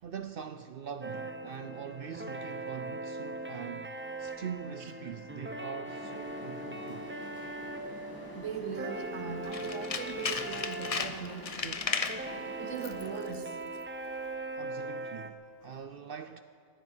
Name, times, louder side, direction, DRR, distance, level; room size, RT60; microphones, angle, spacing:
voice 1, 0.0-7.1 14.6-16.4, right 7 dB, 60° right, 0.6 m, -43 dB
sound 1, 1.0-15.3, right 2 dB, 15° right, 0.6 m, -40 dB
sound 2, 5.8-13.3, left 1 dB, 15° left, 2.0 m, -48 dB
voice 2, 8.3-11.8 12.6-13.5, right 6 dB, 75° right, 1.2 m, -40 dB
Tools, 9.4-12.3 12.8-13.1 13.3-13.4, left 5 dB, 35° left, 0.7 m, -35 dB
15.0 x 9.6 x 9.4 m
omnidirectional pair, 1.3 m